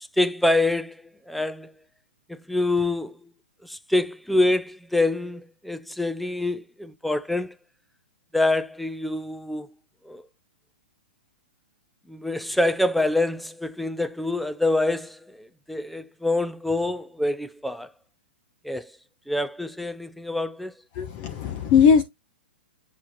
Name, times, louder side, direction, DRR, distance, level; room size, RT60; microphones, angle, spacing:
voice 1, 0.2-1.7 2.3-3.3 3.6-7.5 8.3-9.7 10.0-10.2 12.1-17.9 18.6-18.9 19.3-20.7, left 2 dB, ahead, 0.6 m, -26 dB
voice 2, 21.0-22.0, left 7 dB, 35° left, 1.2 m, -19 dB
8.6 x 6.9 x 2.9 m
figure-of-eight pair, 110°, 6 cm